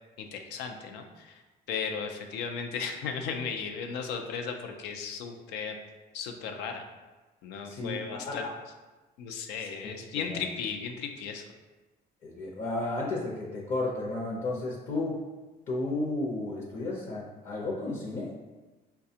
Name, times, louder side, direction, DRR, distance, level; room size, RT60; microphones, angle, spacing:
voice 1, 0.2-1.4 1.7-5.7 6.1-6.8 7.4-8.4 9.2-11.4, left 6 dB, 90° left, 5 dB, 0.5 m, -35 dB
voice 2, 7.6-8.5 9.6-10.4 12.2-15.2 15.7-18.3, left 2 dB, 50° left, -3 dB, 0.7 m, -33 dB
4.8 x 2.3 x 2.7 m, 1.2 s
cardioid pair, 110°, 17 cm